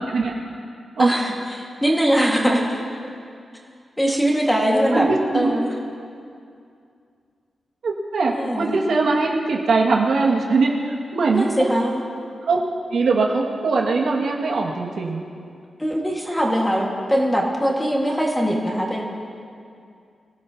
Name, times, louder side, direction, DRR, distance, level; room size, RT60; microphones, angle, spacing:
voice 1, 1.0-2.8 4.0-5.1 5.3-5.7 8.3-8.8 11.3-12.0 15.8-19.0, equal, 5° left, -2 dB, 1.8 m, -21 dB
voice 2, 4.9-5.5 7.8-11.5 12.5-12.6 12.9-15.2, right 3 dB, 75° right, -2 dB, 2.0 m, -21 dB
24.5 x 16.5 x 2.9 m, 2.4 s
wide cardioid pair, 150°, 0 cm